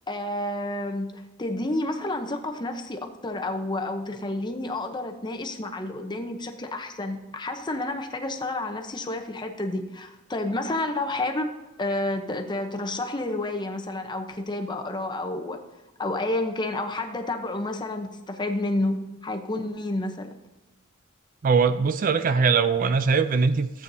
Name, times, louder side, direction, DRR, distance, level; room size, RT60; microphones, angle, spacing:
voice 1, 0.1-11.5 11.8-15.6 16.0-20.3, left 2 dB, 20° left, 5 dB, 0.8 m, -30 dB
voice 2, 21.4-23.8, right 5 dB, 45° right, 11 dB, 0.4 m, -21 dB
14.5 x 8.3 x 2.7 m, 1.1 s
head